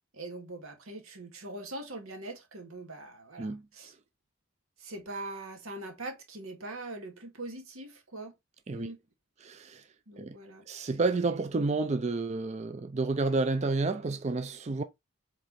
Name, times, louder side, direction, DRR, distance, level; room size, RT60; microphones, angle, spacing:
voice 1, 0.1-3.9 4.8-8.3 8.7-9.0 10.1-10.7, right 2 dB, 85° right, 2.1 m, -42 dB
voice 2, 9.4-9.9 10.2-10.4 10.7-14.8, right 3 dB, 30° right, 0.4 m, -30 dB
7.7 x 3.3 x 4.2 m
head